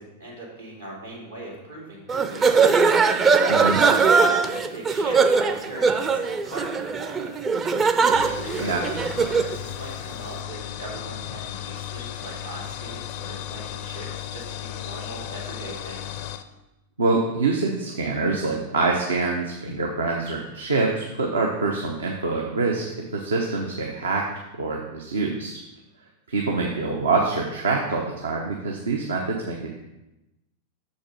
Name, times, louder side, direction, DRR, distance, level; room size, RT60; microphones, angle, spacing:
voice 1, 0.0-2.7 3.6-7.3 8.2-16.2 26.5-26.7, right 1 dB, 85° right, -7 dB, 2.9 m, -39 dB
sound 1, 2.1-9.6, right 5 dB, 25° right, 0.5 m, -20 dB
voice 2, 3.5-3.8 8.6-8.8 17.0-22.9 23.1-24.3 24.6-25.6 26.3-29.9, right 3 dB, 70° right, 0 dB, 0.8 m, -25 dB
sound 2, 8.1-16.4, left 12 dB, 50° left, 0.5 m, -35 dB
6.8 x 5.3 x 5.3 m, 0.96 s
figure-of-eight pair, 90°, 0 cm